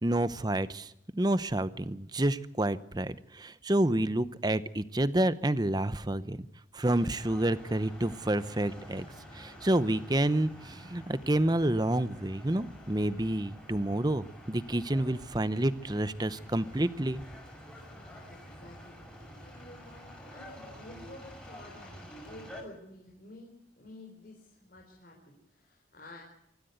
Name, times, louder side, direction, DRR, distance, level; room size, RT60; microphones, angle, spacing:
voice 1, 0.0-6.4 6.7-9.0 9.3-17.2, right 1 dB, 20° right, 14 dB, 0.8 m, -29 dB
sound 1, 6.8-22.6, equal, 5° left, 5.7 m, -48 dB
voice 2, 17.9-26.2, left 1 dB, 50° left, -1 dB, 4.3 m, -51 dB
25.0 x 14.0 x 8.2 m, 0.78 s
head